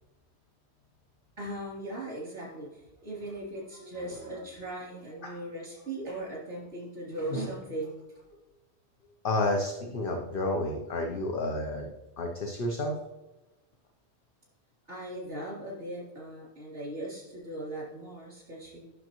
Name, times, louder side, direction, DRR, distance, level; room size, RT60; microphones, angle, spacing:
voice 1, 1.4-8.0 14.9-18.9, right 1 dB, 75° right, -6 dB, 3.5 m, -38 dB
voice 2, 9.2-11.9 12.2-12.9, left 2 dB, 55° left, 2 dB, 0.9 m, -30 dB
9.8 x 6.4 x 3.0 m, 1.0 s
omnidirectional pair, 1.2 m